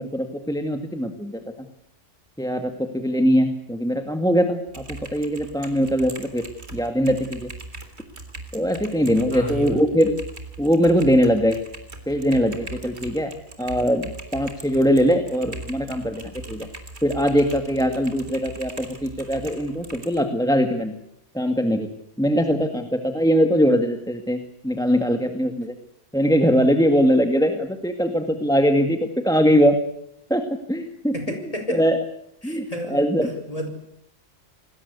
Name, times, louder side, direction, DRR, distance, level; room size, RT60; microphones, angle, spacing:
voice 1, 0.0-1.4 2.4-6.4 6.7-7.5 8.5-10.2 10.6-11.6 12.1-13.3 13.6-16.7 17.0-21.0 21.3-21.9 22.2-24.4 24.6-25.7 26.1-29.8 30.3-32.0 32.4-33.3, equal, 5° left, 7 dB, 1.9 m, -21 dB
Typing, 4.7-20.2, right 2 dB, 60° right, 3.9 m, -40 dB
voice 2, 9.3-9.8 31.1-31.8 32.4-33.7, equal, 30° left, 6 dB, 5.6 m, -31 dB
28.0 x 20.5 x 8.3 m, 0.76 s
omnidirectional pair, 1.3 m